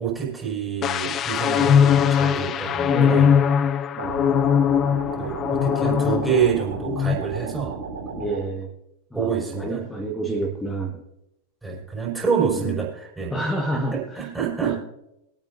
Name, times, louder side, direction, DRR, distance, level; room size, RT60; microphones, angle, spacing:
voice 1, 0.0-3.3 5.2-7.7 9.1-9.8 11.6-13.3 13.9-14.7, right 7 dB, 10° right, -4 dB, 5.4 m, -27 dB
sound 1, 0.8-6.5 6.8-7.1, left 8 dB, 30° left, 0.4 m, -20 dB
voice 2, 2.5-3.5 4.0-4.3 8.2-8.7 9.1-11.0 12.5-12.9 13.3-14.3 14.6-14.7, right 2 dB, 5° left, 1 dB, 1.7 m, -29 dB
sound 2, 4.0-8.4, right 4 dB, 70° right, 2.7 m, -34 dB
22.5 x 9.0 x 2.7 m, 0.85 s
figure-of-eight pair, 90°, 0 cm